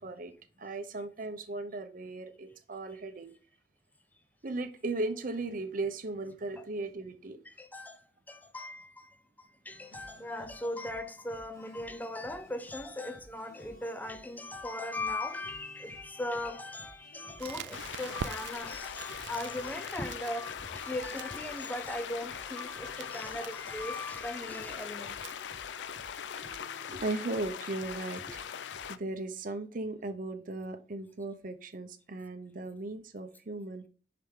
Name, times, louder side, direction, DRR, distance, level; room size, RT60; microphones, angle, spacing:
voice 1, 0.0-3.3 4.4-7.4 26.4-28.4 28.9-33.9, right 2 dB, 50° right, 0.7 m, -37 dB
voice 2, 7.5-25.2, left 1 dB, 10° left, 0.5 m, -39 dB
sound 1, 9.7-28.9, equal, 50° left, 1.7 m, -56 dB
Crackle, 17.4-26.6, right 7 dB, 80° right, 0.4 m, -47 dB
sound 2, 17.7-29.0, left 8 dB, 80° left, 0.4 m, -41 dB
5.8 x 4.9 x 3.7 m
head